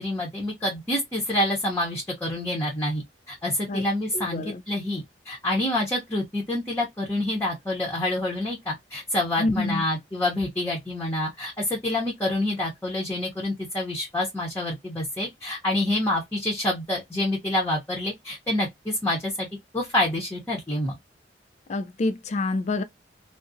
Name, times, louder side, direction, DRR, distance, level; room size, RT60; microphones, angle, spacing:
voice 1, 0.0-19.5 19.7-21.0, left 1 dB, 15° left, 0.7 m, -27 dB
voice 2, 4.1-4.6 9.4-9.8 21.7-22.8, left 2 dB, 40° left, 0.3 m, -27 dB
2.4 x 2.0 x 2.5 m
head